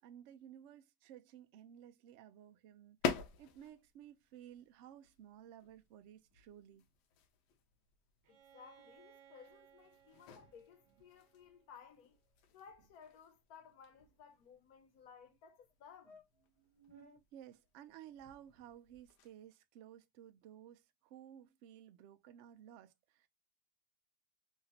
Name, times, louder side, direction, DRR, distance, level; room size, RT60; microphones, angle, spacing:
voice 1, 0.0-6.9 17.3-23.3, right 10 dB, 70° right, 0.7 m, -56 dB
sound 1, 3.0-19.5, left 6 dB, 90° left, 1.2 m, -48 dB
Bowed string instrument, 8.2-12.0, right 9 dB, 85° right, 1.3 m, -65 dB
voice 2, 8.3-12.1 12.5-16.2, left 7 dB, 70° left, 1.2 m, -59 dB
sound 2, 10.3-11.2 11.4-11.6 11.9-12.1 12.4-12.5 12.7-12.9 13.5-14.6 15.3-15.4 15.7-15.8 16.0-17.2 18.0-19.1, right 1 dB, 45° right, 1.1 m, -65 dB
3.2 x 2.8 x 2.7 m
omnidirectional pair, 1.7 m